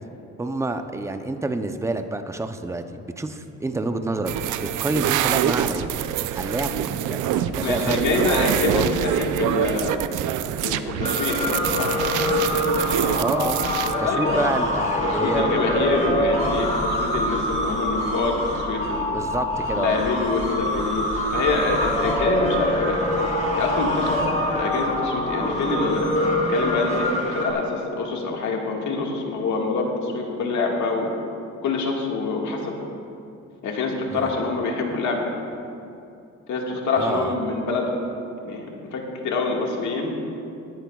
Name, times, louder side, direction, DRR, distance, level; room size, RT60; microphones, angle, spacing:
voice 1, 0.4-4.3 4.6-5.9 6.3-8.9 13.2-13.6 14.0-16.5 19.1-20.0 34.1-34.3 37.0-37.3, right 2 dB, 10° right, 7 dB, 0.6 m, -28 dB
sound 1, 4.3-13.9, right 10 dB, 85° right, 0.5 m, -25 dB
voice 2, 7.6-10.0 10.6-11.9 14.0-14.5 15.0-19.1 19.7-23.1 23.6-24.2 24.5-26.2 26.5-31.1 31.6-32.7 33.6-35.2 36.5-37.9 38.4-38.6 38.9-40.1, left 3 dB, 70° left, 0 dB, 1.8 m, -26 dB
sound 2, 11.0-27.5, left 1 dB, 25° left, 2.5 m, -25 dB
19.0 x 10.5 x 2.4 m, 2.6 s
cardioid pair, 90°, 30 cm